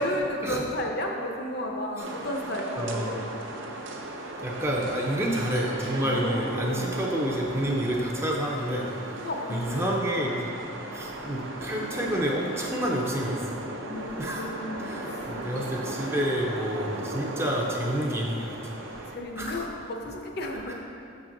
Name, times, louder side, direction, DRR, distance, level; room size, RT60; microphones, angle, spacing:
voice 1, 0.0-3.4 6.0-6.9 9.2-9.8 10.2-10.5 13.9-15.4 18.9-20.7, left 1 dB, 50° left, 1 dB, 0.7 m, -33 dB
sound 1, 2.0-19.2, right 1 dB, 60° right, 0.6 m, -36 dB
voice 2, 2.8-3.1 4.4-8.9 9.5-10.5 10.9-13.6 14.2-14.5 14.8-18.6 19.4-19.5 20.7-20.8, equal, 10° right, -2 dB, 0.5 m, -29 dB
6.6 x 6.1 x 3.8 m, 2.6 s
head